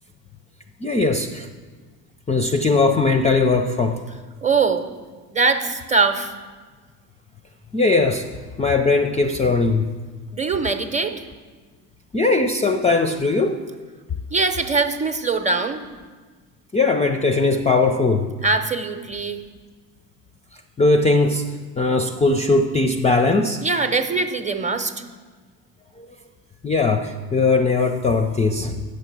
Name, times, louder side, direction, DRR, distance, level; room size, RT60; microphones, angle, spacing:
voice 1, 0.8-1.5 2.3-4.0 7.7-8.3 8.6-9.9 12.1-13.6 16.7-18.3 20.8-21.4 21.8-23.6 26.0-26.1 26.6-28.7, left 3 dB, 15° left, 5 dB, 0.5 m, -19 dB
voice 2, 4.4-4.9 5.3-6.3 10.3-11.2 14.3-15.8 18.4-19.4 23.6-24.9, right 4 dB, 15° right, 8 dB, 0.8 m, -22 dB
8.8 x 6.7 x 6.0 m, 1.4 s
hypercardioid pair, 75°, 45 cm